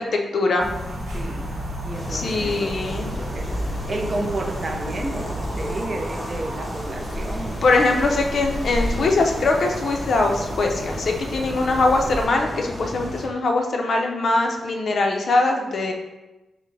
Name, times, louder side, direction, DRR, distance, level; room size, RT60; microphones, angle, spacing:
voice 1, 0.3-0.7 2.1-3.2 7.6-15.9, left 3 dB, 55° left, 2 dB, 0.5 m, -22 dB
sound 1, 0.6-12.3, equal, 65° right, 1.3 m, -32 dB
voice 2, 1.1-1.5 1.8-3.5 3.9-7.6, right 2 dB, 35° right, 3 dB, 0.5 m, -31 dB
sound 2, 1.9-13.3, equal, 15° left, 0.8 m, -34 dB
5.8 x 2.1 x 3.2 m, 1.0 s
wide cardioid pair, 130°, 0 cm